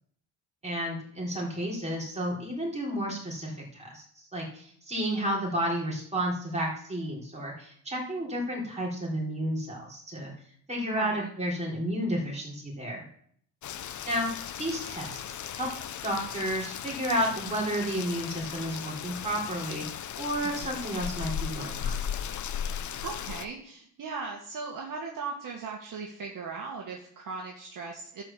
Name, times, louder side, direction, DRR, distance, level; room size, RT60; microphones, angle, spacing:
voice 1, 0.6-10.3 10.7-13.1 14.1-14.3 14.6-22.0, equal, 15° right, -3 dB, 4.1 m, -32 dB
voice 2, 10.9-11.3 20.4-20.7 23.0-28.2, right 4 dB, 45° right, 0 dB, 1.6 m, -38 dB
Rain, 13.6-23.5, left 8 dB, 45° left, 0.7 m, -36 dB
12.0 x 4.9 x 7.4 m, 0.64 s
cardioid pair, 115°, 43 cm